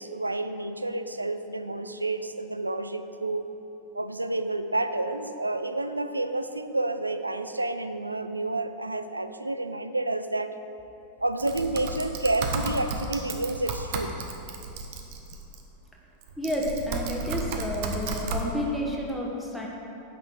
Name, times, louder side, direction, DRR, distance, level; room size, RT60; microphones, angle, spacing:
voice 1, 0.0-3.5 3.9-10.5 11.2-14.2, right 2 dB, 85° right, 10 dB, 0.3 m, -30 dB
Typing, 11.4-15.6 16.2-18.4, right 3 dB, 50° right, 0.8 m, -33 dB
voice 2, 16.4-19.7, equal, ahead, -3 dB, 1.1 m, -30 dB
8.6 x 5.9 x 4.9 m, 2.9 s
figure-of-eight pair, 90°, 0 cm